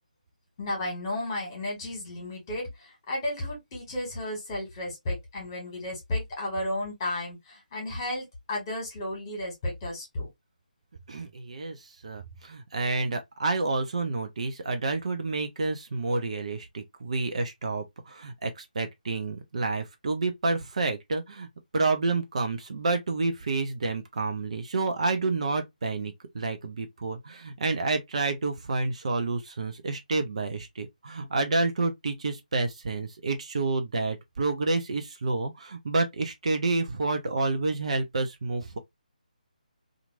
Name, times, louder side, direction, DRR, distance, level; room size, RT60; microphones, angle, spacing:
voice 1, 0.6-10.3, left 1 dB, 30° left, 1.6 m, -33 dB
voice 2, 11.1-21.5 21.7-38.8, right 3 dB, 50° right, 0.6 m, -29 dB
2.9 x 2.5 x 2.5 m
figure-of-eight pair, 150°, 5 cm